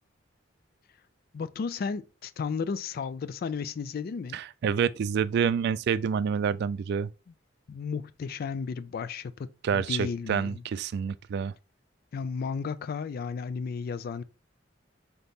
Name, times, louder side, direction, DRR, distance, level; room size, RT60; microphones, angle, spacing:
voice 1, 1.3-4.4 7.7-10.6 12.1-14.2, left 5 dB, 50° left, 0.3 m, -33 dB
voice 2, 4.3-7.1 9.6-11.5, right 7 dB, 60° right, 0.3 m, -28 dB
3.9 x 2.9 x 3.5 m
head